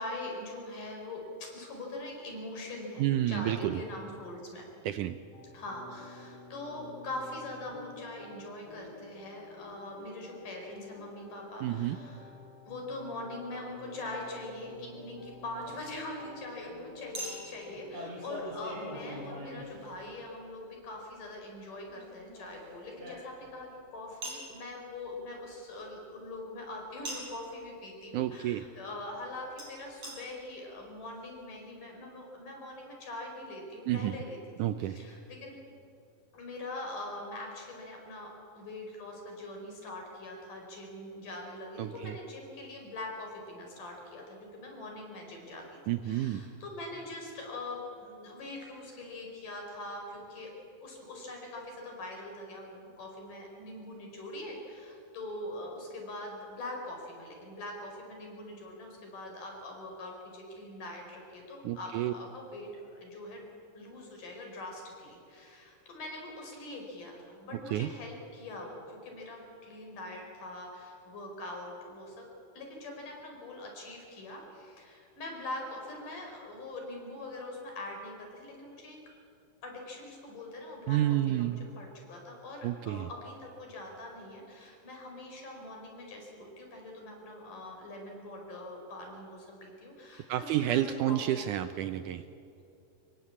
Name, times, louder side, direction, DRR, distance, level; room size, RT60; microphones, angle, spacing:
voice 1, 0.0-4.7 5.5-12.3 12.7-34.4 34.8-35.6 36.3-45.6 46.0-50.5 50.8-63.5 63.7-72.3 72.5-79.0 79.6-91.2, left 2 dB, 60° left, 1 dB, 6.5 m, -43 dB
voice 2, 3.0-3.8 4.9-5.2 11.6-12.0 28.1-28.7 33.9-34.2 34.6-35.0 41.8-42.2 45.9-46.5 61.6-62.1 67.7-67.9 80.9-81.6 82.6-83.1 90.3-92.2, right 13 dB, 75° right, 10 dB, 2.0 m, -30 dB
sound 1, 5.3-19.5, left 2 dB, 35° left, 2.1 m, -50 dB
Chink clink, 14.3-14.5 17.1-20.3 21.9-23.6 24.2-24.5 27.0-27.4 29.6-29.7 30.0-30.1 30.8-30.9 31.1-31.2, right 1 dB, 45° right, 6.0 m, -42 dB
25.5 x 23.0 x 8.6 m, 2.6 s
omnidirectional pair, 4.1 m